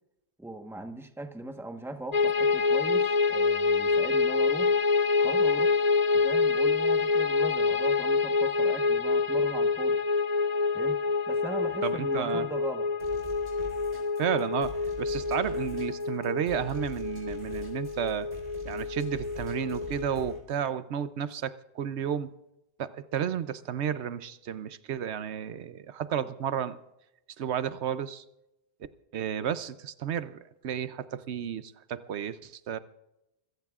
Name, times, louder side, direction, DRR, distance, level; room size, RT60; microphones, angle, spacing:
voice 1, 0.4-4.7 5.2-5.8 6.1-10.0 10.7-12.9 26.2-26.3, right 1 dB, ahead, 5 dB, 1.1 m, -39 dB
sound 1, 2.1-20.4, left 4 dB, 50° left, 0.6 m, -27 dB
voice 2, 11.8-12.5 14.2-18.3 18.6-22.3 22.8-26.8 27.4-28.2 29.1-32.8, right 9 dB, 80° right, 13 dB, 0.9 m, -32 dB
sound 2, 13.0-20.4, equal, 55° right, 4.5 m, -45 dB
25.5 x 16.0 x 2.4 m, 0.90 s
omnidirectional pair, 1.1 m